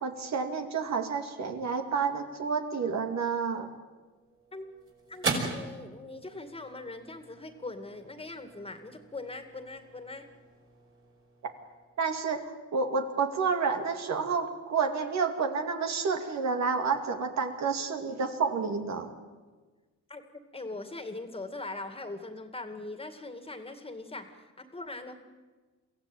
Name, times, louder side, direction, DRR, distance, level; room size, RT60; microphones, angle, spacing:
voice 1, 0.0-3.7 12.0-19.1, right 5 dB, 65° right, 5 dB, 2.4 m, -30 dB
sound 1, 3.9-12.5, right 3 dB, 45° right, 5.5 m, -40 dB
voice 2, 5.1-10.3 20.1-20.2 20.5-25.1, left 2 dB, 20° left, 8 dB, 2.2 m, -41 dB
23.5 x 15.5 x 9.2 m, 1.3 s
cardioid pair, 90°, 30 cm